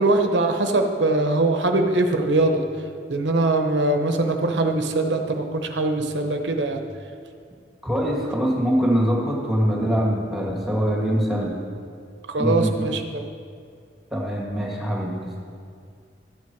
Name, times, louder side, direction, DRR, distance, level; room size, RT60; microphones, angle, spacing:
voice 1, 0.0-2.6 3.1-6.8 12.3-13.0, right 2 dB, 80° right, 5 dB, 0.9 m, -22 dB
voice 2, 7.8-11.6 12.4-12.9 14.1-15.3, equal, ahead, -3 dB, 2.0 m, -23 dB
12.5 x 8.7 x 4.7 m, 2.2 s
head